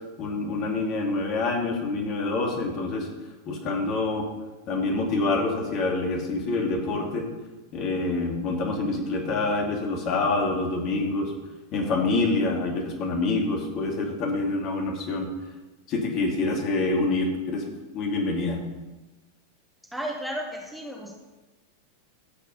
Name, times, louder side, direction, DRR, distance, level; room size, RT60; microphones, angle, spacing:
voice 1, 0.2-3.1 3.5-4.3 4.7-7.3 7.7-11.3 11.7-15.3 15.9-17.6 17.9-18.6, left 3 dB, 35° left, 1 dB, 2.5 m, -26 dB
voice 2, 19.9-21.1, equal, ahead, 0 dB, 1.5 m, -33 dB
12.5 x 8.2 x 5.5 m, 1.1 s
figure-of-eight pair, 90°, 0 cm